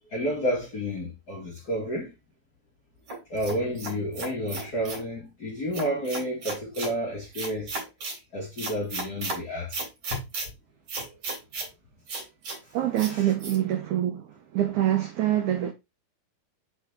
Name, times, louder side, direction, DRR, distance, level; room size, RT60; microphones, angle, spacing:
voice 1, 0.1-2.1 3.3-7.7 8.3-9.8 10.1-10.2 13.1-13.3, equal, 55° left, 1.0 m, -30 dB
sound 1, 3.1-5.1 5.7-6.9 7.3-8.2 8.6-9.4 9.7-10.5 10.9-11.7 12.1-12.6 13.0-13.1 13.4-13.6, right 3 dB, 45° right, 3.0 m, -34 dB
voice 2, 12.7-15.7, right 12 dB, 80° right, 1.7 m, -25 dB
5.9 x 4.6 x 3.6 m
omnidirectional pair, 4.6 m